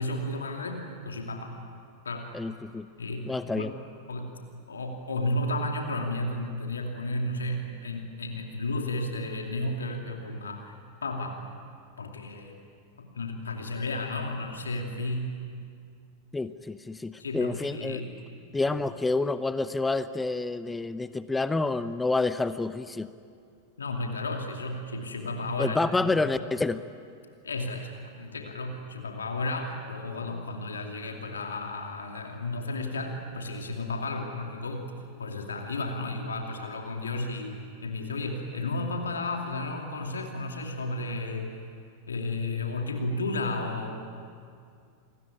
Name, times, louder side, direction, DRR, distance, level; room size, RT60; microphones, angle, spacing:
voice 1, 0.0-1.5 2.0-2.3 3.0-3.7 4.1-4.4 4.7-10.7 11.0-11.4 12.0-12.6 13.0-15.4 17.2-18.1 18.7-18.8 23.8-26.2 27.4-34.9 35.2-41.6 42.1-44.1, left 2 dB, 70° left, 3 dB, 2.6 m, -33 dB
voice 2, 2.3-2.9 3.2-3.7 16.3-18.0 18.5-23.1 25.6-26.8, left 3 dB, 10° left, 14 dB, 0.7 m, -28 dB
28.5 x 21.5 x 9.8 m, 2.3 s
figure-of-eight pair, 90°, 0 cm